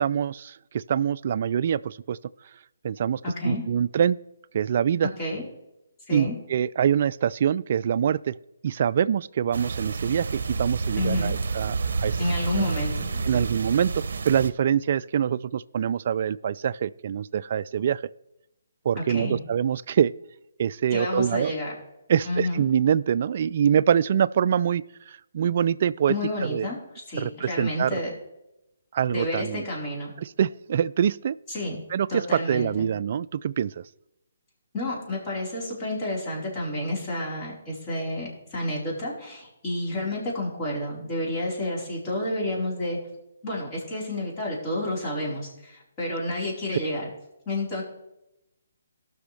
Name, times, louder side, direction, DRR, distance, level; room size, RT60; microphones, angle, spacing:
voice 1, 0.0-2.2 2.8-4.2 4.5-5.1 6.1-8.4 8.6-12.2 12.6-12.7 13.2-18.0 18.9-20.1 20.6-21.5 22.1-26.1 26.4-26.7 27.2-28.0 28.9-29.6 30.2-31.4 31.9-33.8, right 8 dB, 50° right, 16 dB, 0.3 m, -25 dB
voice 2, 3.2-3.6 5.2-5.4 6.1-6.3 11.0-11.4 12.2-13.4 19.1-19.4 20.9-21.7 22.2-22.6 26.1-26.8 27.1-28.1 29.1-30.1 31.5-31.8 32.1-32.9 34.7-43.0 43.4-47.1 47.5-47.8, left 1 dB, 30° left, -4 dB, 4.4 m, -30 dB
sound 1, 9.5-14.5, right 4 dB, 65° right, 0.7 m, -29 dB
18.5 x 6.3 x 3.4 m, 0.88 s
hypercardioid pair, 150°, 0 cm